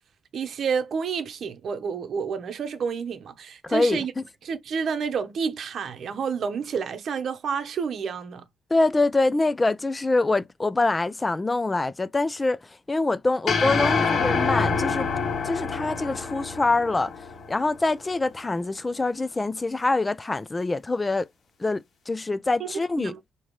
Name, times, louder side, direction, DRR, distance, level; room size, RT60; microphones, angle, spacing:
voice 1, 0.3-4.1 4.4-8.4 22.6-22.7 23.0-23.2, right 6 dB, 60° right, 0.8 m, -29 dB
voice 2, 3.6-4.2 8.7-12.6 12.9-15.1 15.4-17.1 17.5-21.3 21.6-23.1, left 2 dB, 20° left, 0.4 m, -25 dB
sound 1, 13.5-17.9, left 5 dB, 60° left, 1.4 m, -26 dB
5.0 x 2.9 x 3.1 m
cardioid pair, 90°, 0 cm